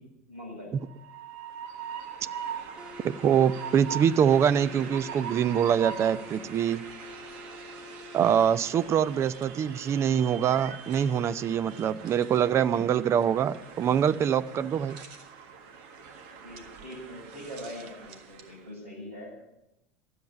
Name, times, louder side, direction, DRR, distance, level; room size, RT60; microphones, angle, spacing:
voice 1, 0.3-0.8 16.4-19.3, equal, 80° right, -1 dB, 6.4 m, -42 dB
Train, 0.8-18.6, right 7 dB, 60° right, 1.6 m, -42 dB
sound 1, 2.8-8.5, left 3 dB, 15° right, 1.2 m, -47 dB
voice 2, 3.0-6.8 8.1-15.0, right 8 dB, 40° right, 15 dB, 0.6 m, -24 dB
13.0 x 8.2 x 9.6 m, 0.91 s
hypercardioid pair, 70°, 7 cm